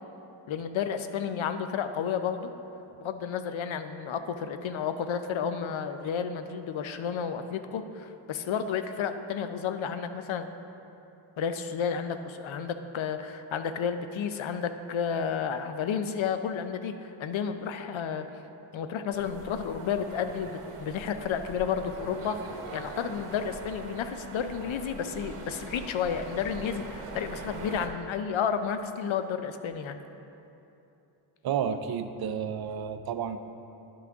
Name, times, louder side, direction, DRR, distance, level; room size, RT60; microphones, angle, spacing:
voice 1, 0.5-2.5 3.0-10.5 11.4-18.3 18.7-30.0, left 7 dB, 70° left, 9 dB, 0.6 m, -31 dB
sound 1, 19.1-27.9, right 3 dB, 85° right, 0.9 m, -42 dB
voice 2, 31.4-33.4, right 8 dB, 50° right, 9 dB, 0.5 m, -31 dB
11.0 x 6.0 x 3.5 m, 2.9 s
wide cardioid pair, 145°, 50 cm